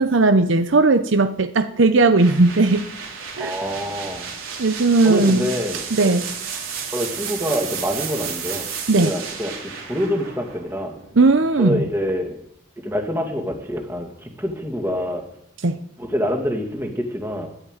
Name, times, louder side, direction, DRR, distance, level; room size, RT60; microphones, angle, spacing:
voice 1, 0.0-2.8 3.4-3.5 4.6-5.5 5.9-6.3 8.9-9.1 11.1-11.9 15.6-15.8, right 3 dB, 65° right, 9 dB, 0.8 m, -17 dB
sound 1, 2.2-11.9, right 6 dB, 85° right, 3.5 m, -33 dB
voice 2, 3.4-4.3 5.0-6.2 6.9-8.7 9.0-10.9 11.6-12.4 12.8-15.2 16.0-17.5, equal, 10° right, 3 dB, 2.1 m, -26 dB
11.5 x 9.9 x 9.0 m, 0.73 s
head